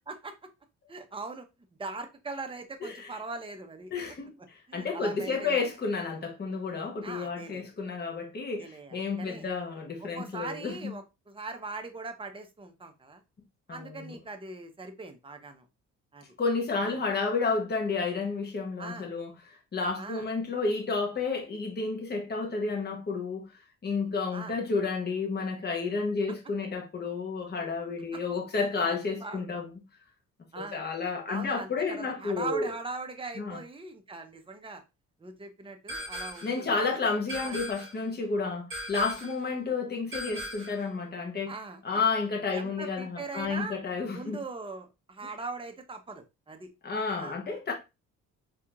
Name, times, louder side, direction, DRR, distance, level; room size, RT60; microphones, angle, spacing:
voice 1, 0.9-1.5 1.8-3.9 4.7-5.6 7.0-7.7 8.6-9.5 10.0-13.2 13.7-15.6 16.1-16.3 16.8-17.0 18.8-19.1 20.0-20.3 24.3-24.6 28.1-28.2 28.9-29.0 29.2-29.4 30.5-30.8 31.3-34.8 35.2-37.0 37.4-37.6 41.5-41.8 42.5-43.8 44.1-46.7 47.2-47.4, right 3 dB, 15° right, 0.8 m, -40 dB
voice 2, 2.8-3.1 3.9-10.9 13.7-14.2 16.4-23.5 23.8-29.7 30.6-32.7 33.4-33.6 36.4-41.5 41.8-44.4 46.8-47.7, left 4 dB, 35° left, 1.1 m, -31 dB
sound 1, 35.9-36.6 37.3-38.0 38.7-39.4 40.1-40.8, equal, 45° right, 1.4 m, -38 dB
4.2 x 2.9 x 2.5 m
cardioid pair, 90°, 30 cm